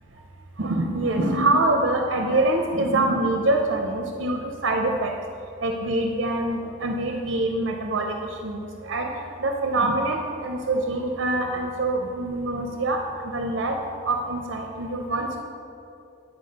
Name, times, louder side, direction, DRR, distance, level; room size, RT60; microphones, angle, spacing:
voice 1, 0.6-5.1 5.6-8.1 8.4-9.1 9.4-13.0 13.3-13.8 14.0-15.4, right 2 dB, 60° right, 3 dB, 0.6 m, -25 dB
9.5 x 4.5 x 5.3 m, 2.7 s
head